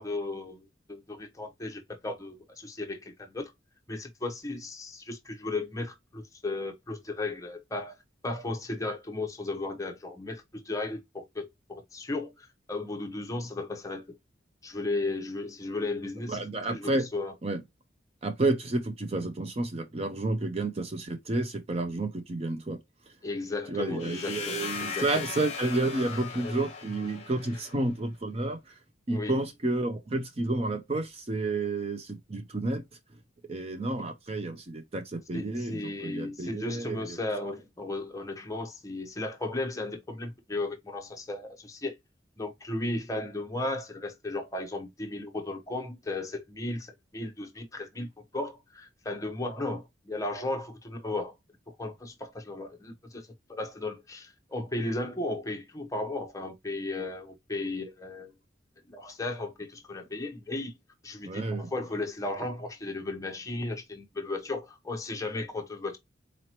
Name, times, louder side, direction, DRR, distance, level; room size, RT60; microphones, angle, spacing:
voice 1, 0.0-3.5 3.9-7.9 8.2-14.2 14.6-16.4 16.7-17.3 23.2-25.3 26.1-26.6 29.1-29.4 34.0-34.1 35.3-42.0 42.4-51.3 51.8-58.3 58.9-60.7 61.0-66.0, left 2 dB, 15° left, 0.8 m, -35 dB
voice 2, 16.3-17.1 17.4-17.6 18.2-22.8 23.7-28.8 29.1-32.8 33.5-37.2 61.2-61.7, right 2 dB, 30° right, 0.6 m, -30 dB
sound 1, 24.0-27.8, left 6 dB, 35° left, 1.1 m, -38 dB
4.1 x 2.9 x 2.9 m
head